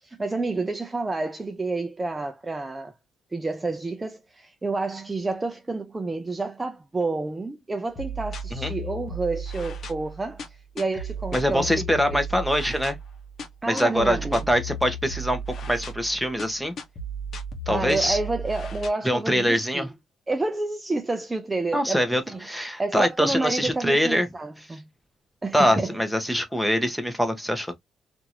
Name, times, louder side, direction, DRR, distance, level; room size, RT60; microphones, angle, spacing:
voice 1, 0.0-2.9 3.3-12.2 13.6-14.4 17.7-19.9 20.3-22.4 22.8-24.9 25.4-26.0, right 3 dB, 20° right, 0.4 m, -29 dB
sound 1, 8.0-18.9, right 2 dB, 55° left, 0.9 m, -35 dB
voice 2, 11.3-13.0 13.7-15.4 15.7-16.7 17.7-18.2 19.0-19.9 21.7-24.3 25.5-27.7, equal, ahead, 0.8 m, -24 dB
2.8 x 2.5 x 2.7 m
cardioid pair, 90°, 0 cm